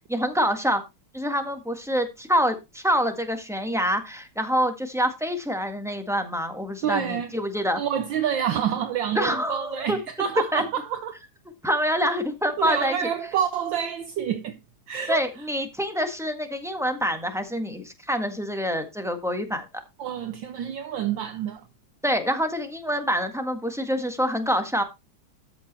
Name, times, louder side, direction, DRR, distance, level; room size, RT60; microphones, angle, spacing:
voice 1, 0.1-0.8 1.1-7.8 9.1-10.0 10.5-10.6 11.6-13.0 15.1-19.6 22.0-24.8, equal, ahead, 1.3 m, -26 dB
voice 2, 6.8-7.3 7.7-11.2 12.6-14.6 14.9-15.3 20.0-21.6, right 9 dB, 70° right, 1.5 m, -28 dB
13.5 x 6.0 x 4.2 m
omnidirectional pair, 2.3 m